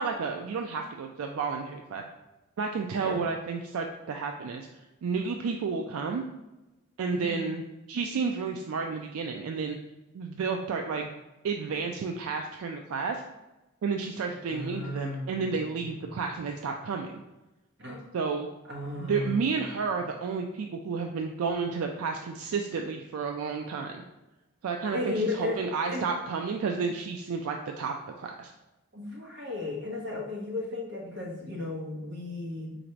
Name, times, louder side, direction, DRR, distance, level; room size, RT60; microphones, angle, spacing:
voice 1, 0.0-2.0 2.6-4.7 5.0-6.2 7.0-9.8 10.1-11.1 11.4-13.2 13.8-17.1 18.1-18.5 19.0-24.0 24.6-28.5, right 5 dB, 80° right, 3 dB, 0.3 m, -31 dB
voice 2, 2.9-3.2 7.1-7.5 14.5-15.9 17.8-18.1 18.6-19.9 24.9-25.6 25.9-26.1 28.9-32.7, left 2 dB, 55° right, -2 dB, 1.1 m, -35 dB
4.0 x 2.6 x 4.4 m, 1.0 s
head